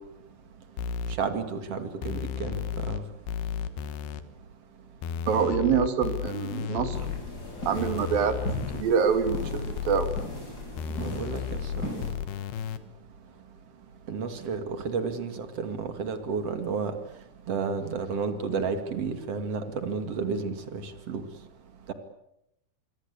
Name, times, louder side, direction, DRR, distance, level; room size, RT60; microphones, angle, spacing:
sound 1, 0.8-1.2 2.0-3.0 3.3-4.2 5.0-7.2 7.8-8.8 9.3-10.2 10.8-12.8, left 8 dB, 75° left, 3.2 m, -33 dB
voice 1, 1.2-3.0 11.0-12.1 14.1-16.9 17.5-21.2, right 5 dB, 45° right, 8 dB, 2.7 m, -32 dB
voice 2, 5.3-7.0 7.7-8.4 8.7-10.1, right 7 dB, 60° right, 9 dB, 3.7 m, -25 dB
sound 2, 6.9-12.1, left 1 dB, 20° left, 7.1 m, -37 dB
26.0 x 23.0 x 8.5 m, 0.84 s
omnidirectional pair, 4.8 m